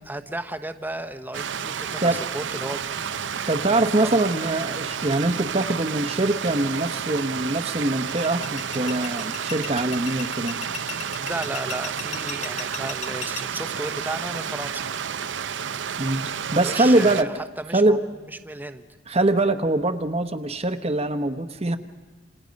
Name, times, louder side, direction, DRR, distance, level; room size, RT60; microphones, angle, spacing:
voice 1, 0.1-3.1 4.0-4.1 11.2-14.8 16.6-18.0 18.3-18.9, right 1 dB, 10° right, 9 dB, 1.0 m, -34 dB
Stream, 1.3-17.2, right 7 dB, 85° right, 0.7 m, -31 dB
voice 2, 3.5-10.6 16.0-17.4 17.7-18.0 19.1-21.8, right 2 dB, 35° right, 9 dB, 1.0 m, -23 dB
sound 1, 8.1-13.4, left 8 dB, 40° left, 1.2 m, -35 dB
28.0 x 27.0 x 5.3 m, 1.3 s
head